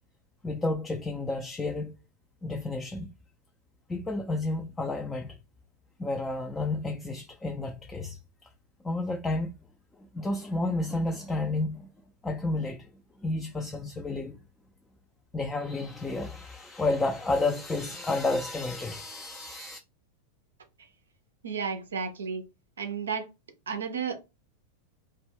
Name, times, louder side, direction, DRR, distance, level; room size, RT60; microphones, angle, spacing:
voice 1, 0.4-2.0 2.4-3.1 3.9-5.4 6.0-8.5 8.8-9.5 9.9-11.9 12.2-12.9 13.2-14.4 15.3-19.8, left 2 dB, 15° left, 0.3 m, -31 dB
voice 2, 21.4-22.4 22.8-23.3 23.7-24.1, right 6 dB, 70° right, 0.4 m, -32 dB
2.1 x 2.1 x 3.4 m
figure-of-eight pair, 90°, 0 cm